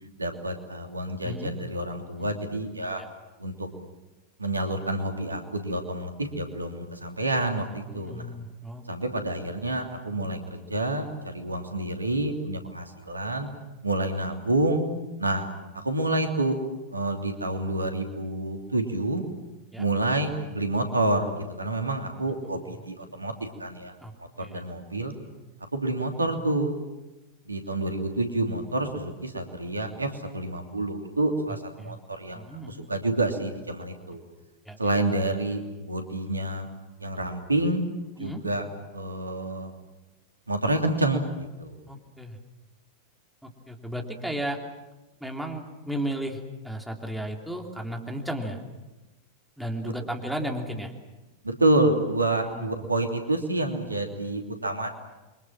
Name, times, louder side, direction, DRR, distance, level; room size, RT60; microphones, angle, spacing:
voice 1, 0.2-3.0 3.4-3.7 4.4-8.2 8.9-13.5 13.8-14.8 15.2-15.5 15.8-16.6 16.9-19.2 19.8-23.3 23.6-23.9 24.4-25.1 25.7-26.7 27.5-34.2 34.8-36.7 37.0-37.8 38.2-38.6 38.9-39.7 40.5-41.7 49.8-49.9 51.4-54.9, right 2 dB, 80° right, 4 dB, 2.9 m, -28 dB
voice 2, 1.2-1.5 2.2-2.3 8.0-8.9 19.7-19.8 22.4-22.6 24.0-24.6 31.5-32.0 32.3-32.9 34.6-34.8 38.2-38.4 41.9-42.4 43.4-44.6 45.2-48.6 49.6-50.9 52.4-52.8, right 1 dB, ahead, 2 dB, 3.3 m, -34 dB
29.0 x 24.0 x 7.5 m, 1.1 s
figure-of-eight pair, 90°, 0 cm